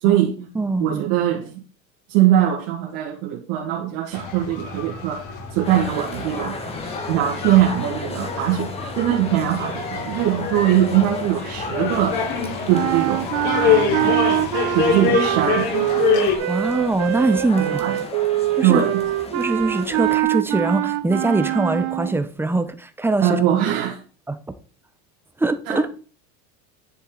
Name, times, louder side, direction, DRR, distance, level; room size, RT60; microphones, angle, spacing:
voice 1, 0.0-0.5 0.8-1.6 2.1-5.2 5.5-6.6 7.1-12.2 12.7-13.3 13.6-14.2 14.7-15.7 17.6-18.0 18.6-19.0 23.2-24.0 25.7-26.0, right 11 dB, 70° right, 2.0 m, -21 dB
voice 2, 0.5-1.0 9.1-9.2 16.5-17.9 18.6-18.9 19.3-23.4 24.3-24.4 25.4-25.9, right 2 dB, 5° right, 0.7 m, -22 dB
sound 1, 4.1-16.4, left 7 dB, 50° left, 3.7 m, -26 dB
sound 2, 5.6-20.2, left 3 dB, 15° left, 1.3 m, -34 dB
sound 3, 12.7-22.3, right 15 dB, 45° right, 0.8 m, -24 dB
10.5 x 7.4 x 4.0 m
cardioid pair, 155°, 38 cm